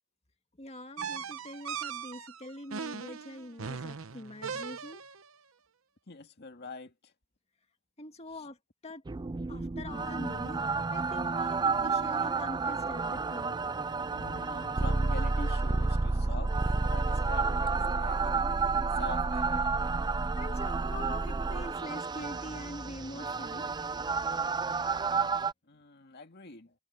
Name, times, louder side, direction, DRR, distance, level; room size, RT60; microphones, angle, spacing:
voice 1, 0.6-5.0 8.0-8.6 8.8-9.0 9.5-10.6 10.9-13.6 20.4-23.7, left 1 dB, 30° left, 2.0 m, -44 dB
sound 1, 1.0-5.3, right 6 dB, 80° right, 0.9 m, -39 dB
voice 2, 6.1-7.1 8.3-8.5 14.1-16.6 16.9-19.7 25.7-26.7, left 3 dB, 50° left, 2.3 m, -45 dB
sound 2, 9.0-25.5, right 4 dB, 20° right, 0.4 m, -30 dB
head